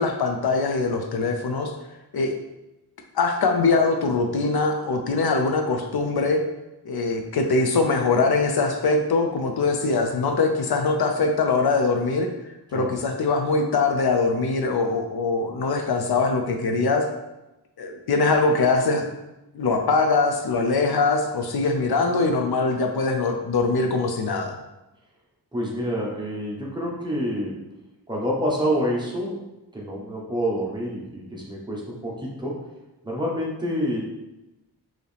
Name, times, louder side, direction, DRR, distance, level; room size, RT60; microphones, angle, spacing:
voice 1, 0.0-1.7 2.1-2.3 3.1-6.4 6.8-12.3 12.7-17.1 17.8-19.0 19.5-24.6, left 3 dB, 70° left, 4 dB, 0.6 m, -22 dB
voice 2, 25.5-27.5 28.1-29.4 29.7-32.6 33.0-34.0, equal, 10° right, -4 dB, 1.0 m, -27 dB
4.7 x 2.9 x 3.3 m, 0.97 s
wide cardioid pair, 150°, 40 cm